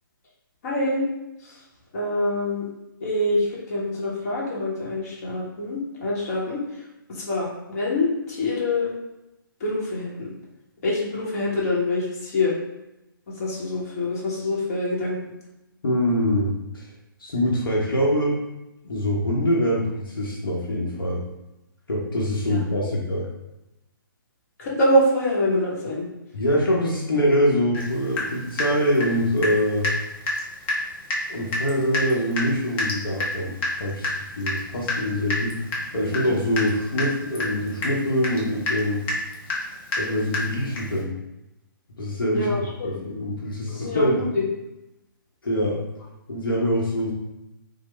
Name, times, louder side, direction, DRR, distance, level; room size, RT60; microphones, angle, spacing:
voice 1, 0.6-1.0 1.4-1.6 1.9-2.7 3.0-6.6 7.1-8.9 9.6-10.3 10.8-12.5 13.4-15.2 22.5-22.9 24.6-26.1 42.3-43.0 43.7-44.4, left 1 dB, 40° left, -5 dB, 0.9 m, -25 dB
voice 2, 15.8-16.9 17.2-18.4 18.8-21.2 21.9-23.3 26.3-29.9 31.3-35.6 35.9-39.0 40.0-41.1 42.0-44.3 45.4-45.8 46.3-47.1, equal, 70° left, -3 dB, 0.8 m, -24 dB
Water tap faucet / Drip, 27.7-27.9 28.2-29.6 29.8-30.0 30.3-30.4 30.7-30.8 31.1-31.3 31.5-41.0, left 2 dB, 15° left, 0.4 m, -28 dB
3.0 x 2.0 x 3.1 m, 0.94 s
figure-of-eight pair, 140°, 12 cm